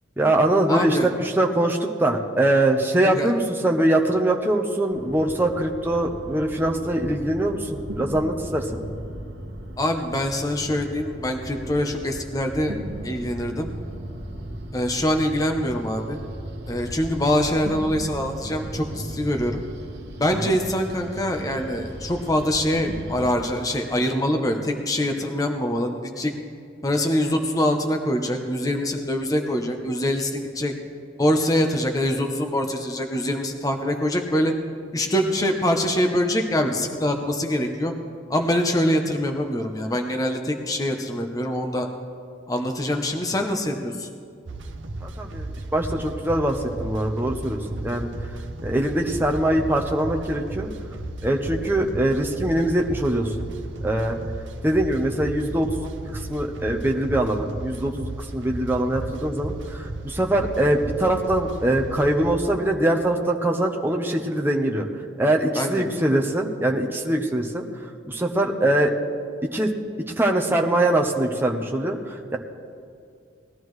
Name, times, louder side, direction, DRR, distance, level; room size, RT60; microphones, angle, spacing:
voice 1, 0.2-8.8 45.0-48.1 48.6-50.7 51.2-53.3 53.8-54.2 54.6-64.8 65.2-67.6 68.0-68.9 69.5-69.7 70.2-72.4, right 1 dB, 10° right, 1 dB, 0.8 m, -23 dB
voice 2, 0.7-1.1 3.0-3.3 9.8-12.8 13.0-13.7 14.7-16.2 16.7-19.6 20.2-26.3 26.8-30.7 31.2-34.5 34.9-37.9 38.3-41.9 42.5-44.1 65.6-65.8, left 1 dB, 20° left, 4 dB, 0.7 m, -24 dB
sound 1, 4.9-23.4, right 1 dB, 60° right, 1.1 m, -37 dB
sound 2, 44.5-62.3, right 2 dB, 75° right, 0.7 m, -34 dB
19.0 x 12.5 x 3.2 m, 2.4 s
head